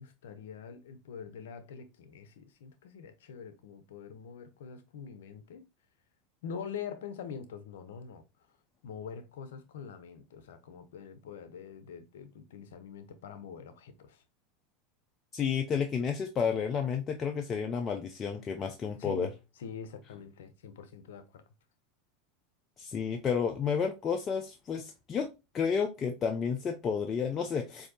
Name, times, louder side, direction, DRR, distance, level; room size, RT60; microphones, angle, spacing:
voice 1, 0.0-5.6 6.4-8.2 8.8-14.2 19.0-19.3 19.6-21.4, left 6 dB, 80° left, 0.6 m, -44 dB
voice 2, 15.3-19.3 22.8-25.3 25.5-27.9, left 6 dB, 30° left, 0.5 m, -31 dB
4.5 x 2.7 x 2.5 m
hypercardioid pair, 95°, 0 cm